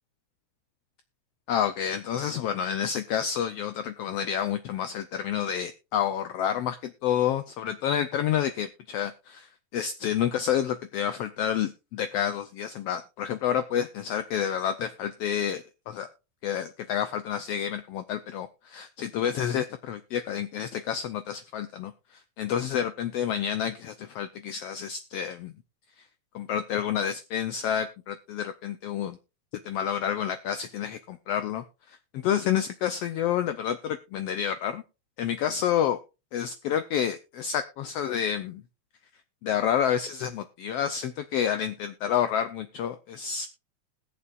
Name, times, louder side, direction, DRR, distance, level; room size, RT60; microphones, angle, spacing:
voice 1, 1.5-16.1 16.4-21.9 22.4-25.5 26.3-29.2 29.6-34.8 35.2-36.0 36.3-38.6 39.4-43.5, left 9 dB, 85° left, 10 dB, 1.3 m, -29 dB
20.5 x 6.9 x 2.4 m, 0.28 s
omnidirectional pair, 3.5 m